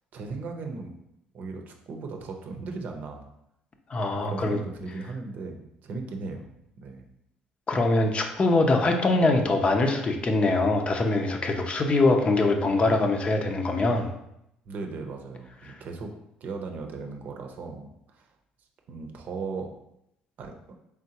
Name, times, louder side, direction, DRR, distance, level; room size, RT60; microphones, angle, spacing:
voice 1, 0.1-0.9 1.3-3.3 4.2-6.5 6.8-7.0 14.6-16.1 16.4-18.3 18.9-19.7 20.4-20.5, right 4 dB, 60° right, 4 dB, 0.7 m, -37 dB
voice 2, 3.9-4.6 7.7-14.1, left 2 dB, 35° left, 4 dB, 0.6 m, -23 dB
3.7 x 3.4 x 2.9 m, 0.80 s
supercardioid pair, 80°, 3 cm